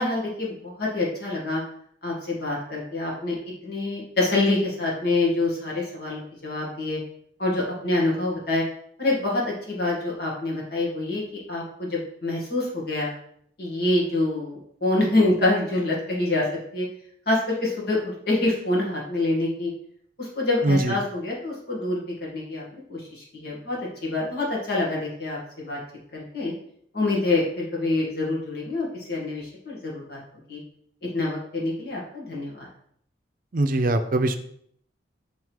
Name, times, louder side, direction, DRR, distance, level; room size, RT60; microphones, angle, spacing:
voice 1, 0.0-1.6 2.0-3.4 3.6-7.0 7.4-8.6 9.0-13.1 13.6-16.5 16.7-16.9 17.3-19.7 20.2-22.6 22.9-25.8 26.1-26.5 26.9-30.2 30.5-30.6 31.1-32.7, left 2 dB, 60° left, -4 dB, 2.2 m, -26 dB
voice 2, 33.5-34.4, right 2 dB, 50° right, 8 dB, 0.6 m, -21 dB
5.5 x 3.7 x 4.7 m, 0.66 s
head